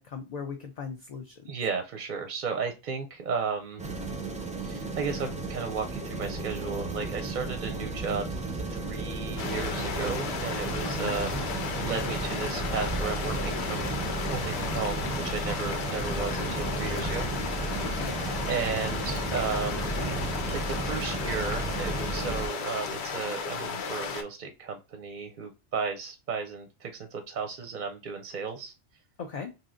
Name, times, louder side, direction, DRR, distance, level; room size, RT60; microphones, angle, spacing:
voice 1, 0.0-1.4 10.8-11.2 17.9-18.2 29.2-29.5, left 6 dB, 55° left, 3 dB, 0.5 m, -38 dB
voice 2, 1.5-3.8 4.6-13.9 14.3-17.3 18.5-19.9 20.5-28.7, right 5 dB, 55° right, 6 dB, 0.6 m, -34 dB
sound 1, 3.8-22.5, right 2 dB, 10° right, 0.3 m, -34 dB
Breathing, 6.0-8.4 9.2-11.5 12.6-15.5 16.1-18.3 19.2-21.5, equal, 5° left, 0.7 m, -45 dB
sound 2, 9.4-24.2, left 5 dB, 75° left, 0.9 m, -34 dB
3.2 x 2.7 x 2.5 m, 0.27 s
omnidirectional pair, 1.1 m